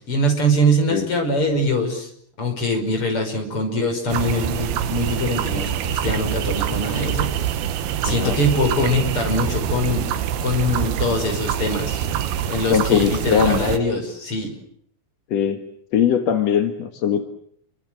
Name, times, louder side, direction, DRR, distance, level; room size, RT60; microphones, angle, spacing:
voice 1, 0.0-2.1 2.4-7.5 8.0-12.0 12.5-14.5, equal, 30° left, 5 dB, 6.1 m, -23 dB
sound 1, 4.1-13.8, right 10 dB, 70° right, 3.0 m, -25 dB
voice 2, 8.1-8.4 12.7-13.7 15.3-15.6 15.9-17.2, left 8 dB, 55° left, 6 dB, 2.1 m, -20 dB
29.0 x 24.0 x 7.7 m, 0.66 s
omnidirectional pair, 4.8 m